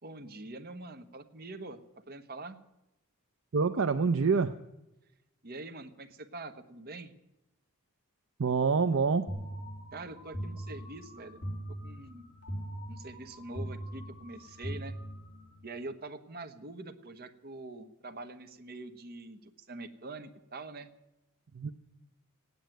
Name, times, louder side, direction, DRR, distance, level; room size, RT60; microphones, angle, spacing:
voice 1, 0.0-1.8 2.1-2.6 5.4-7.1 9.9-11.4 11.7-12.3 12.9-14.9 15.6-20.9, right 2 dB, 45° right, 7 dB, 1.2 m, -44 dB
voice 2, 3.5-4.5 8.4-9.3 21.5-21.7, right 5 dB, 60° right, 8 dB, 0.6 m, -26 dB
sound 1, 9.3-15.6, right 1 dB, 50° left, 3.9 m, -41 dB
16.5 x 9.4 x 9.2 m, 0.94 s
head